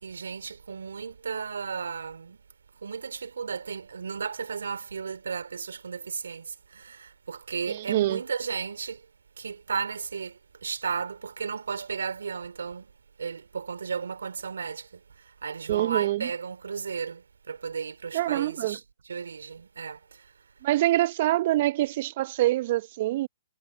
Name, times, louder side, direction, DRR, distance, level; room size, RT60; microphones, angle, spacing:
voice 1, 0.0-2.4 2.8-9.1 9.4-12.9 13.2-20.3, right 5 dB, 75° right, 2.7 m, -34 dB
voice 2, 7.7-8.2 15.7-16.3 18.1-18.8 20.6-23.3, right 15 dB, 45° right, 0.8 m, -25 dB
figure-of-eight pair, 120°, 0 cm